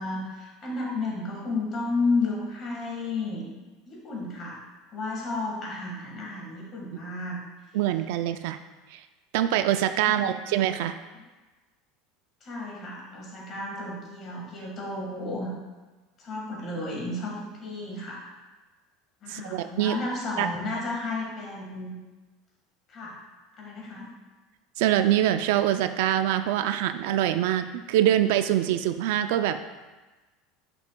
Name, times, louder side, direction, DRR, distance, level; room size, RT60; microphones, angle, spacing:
voice 1, 0.0-3.5 3.9-4.6 4.9-7.4 10.0-10.4 12.4-15.5 16.2-18.2 19.2-21.9 22.9-23.2 23.6-24.1, left 2 dB, 25° left, -2 dB, 1.6 m, -32 dB
voice 2, 7.7-8.6 8.9-9.0 9.3-11.0 19.3-20.0 20.4-20.5 24.8-29.6, right 12 dB, 65° right, 10 dB, 0.3 m, -24 dB
10.5 x 6.0 x 2.3 m, 1.2 s
cardioid pair, 180°, 0 cm